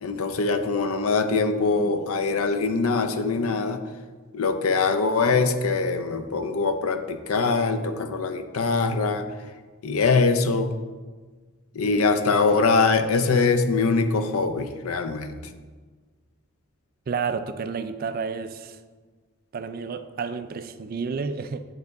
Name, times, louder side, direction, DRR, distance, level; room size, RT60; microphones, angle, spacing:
voice 1, 0.0-3.8 4.3-9.3 9.8-10.7 11.7-15.4, left 4 dB, 80° left, 0.6 m, -23 dB
voice 2, 17.1-18.8 19.5-21.7, right 5 dB, 40° right, 0.3 m, -30 dB
9.2 x 5.2 x 3.5 m
head